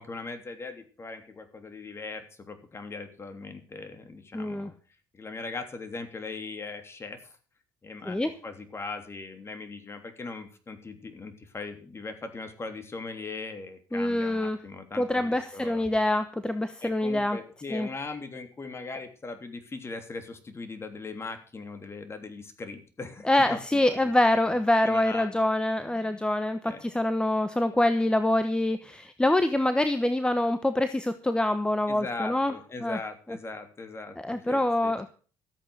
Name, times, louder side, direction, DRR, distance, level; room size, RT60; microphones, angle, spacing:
voice 1, 0.0-4.7 5.1-7.4 7.8-15.9 16.8-24.1 24.4-24.5 24.8-25.3 25.8-26.3 26.6-26.8 31.9-35.1, left 3 dB, 30° left, 8 dB, 3.1 m, -40 dB
voice 2, 4.3-4.7 8.0-8.3 13.9-14.6 15.0-17.4 17.7-17.9 23.2-32.5 32.8-33.0 34.2-35.1, left 1 dB, 10° left, 10 dB, 1.1 m, -25 dB
14.0 x 8.5 x 6.5 m, 0.40 s
hypercardioid pair, 65°, 9 cm